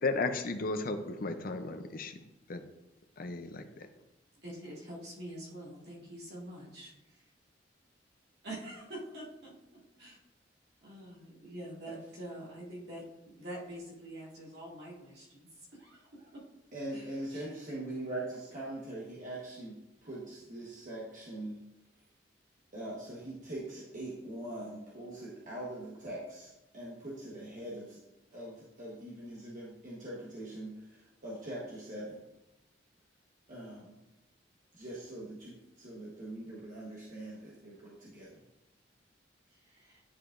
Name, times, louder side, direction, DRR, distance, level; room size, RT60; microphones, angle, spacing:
voice 1, 0.0-2.2 2.5-2.6 3.2-3.9, left 3 dB, 50° left, 7 dB, 0.6 m, -34 dB
voice 2, 4.4-6.9 8.4-9.5 10.0-10.2 10.8-16.4 16.9-17.5 39.5-40.0, right 1 dB, 65° right, -6 dB, 2.3 m, -46 dB
voice 3, 16.7-21.6 22.7-28.0 28.3-32.2 33.5-34.0 34.7-38.4, right 1 dB, 45° right, -6 dB, 1.2 m, -42 dB
10.0 x 4.8 x 2.5 m, 0.96 s
head